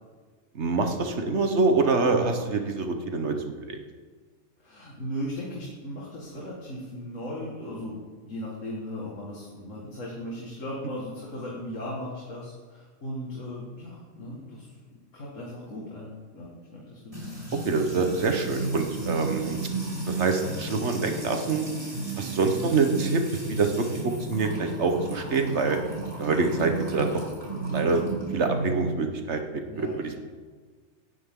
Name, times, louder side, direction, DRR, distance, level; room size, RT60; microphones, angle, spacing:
voice 1, 0.5-3.3 3.6-3.8 17.6-19.6 20.1-21.7 22.2-23.2 23.5-25.8 26.2-27.2 27.7-28.0 28.3-30.2, right 4 dB, 60° right, 5 dB, 1.4 m, -25 dB
voice 2, 4.6-14.7 15.1-17.3 22.4-22.7 29.6-30.2, equal, 75° left, -4 dB, 2.3 m, -37 dB
Music / Water tap faucet / Trickle dribble, 17.1-28.9, right 2 dB, 25° right, 3.5 m, -33 dB
17.5 x 10.0 x 3.8 m, 1.5 s
omnidirectional pair, 1.3 m